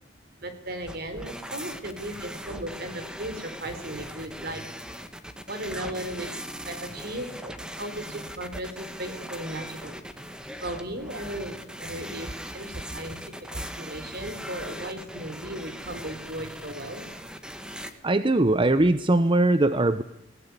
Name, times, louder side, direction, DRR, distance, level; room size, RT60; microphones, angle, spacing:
voice 1, 0.4-4.6 5.5-6.3 6.7-10.0 10.6-17.1, right 1 dB, 60° right, 9 dB, 3.9 m, -36 dB
sound 1, 0.9-17.9, equal, 5° right, 1.8 m, -40 dB
voice 2, 18.0-20.0, right 2 dB, 30° right, 12 dB, 0.8 m, -21 dB
20.0 x 19.0 x 9.8 m, 0.77 s
head